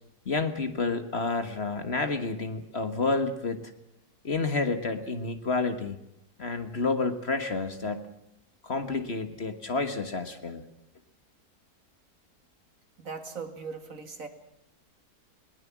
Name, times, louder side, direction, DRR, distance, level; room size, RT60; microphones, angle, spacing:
voice 1, 0.2-3.6 4.2-6.0 6.4-8.1 8.6-10.6, left 3 dB, 40° left, 9 dB, 1.7 m, -29 dB
voice 2, 13.0-14.3, right 5 dB, 55° right, 8 dB, 2.5 m, -39 dB
21.0 x 20.5 x 7.4 m, 0.81 s
omnidirectional pair, 1.7 m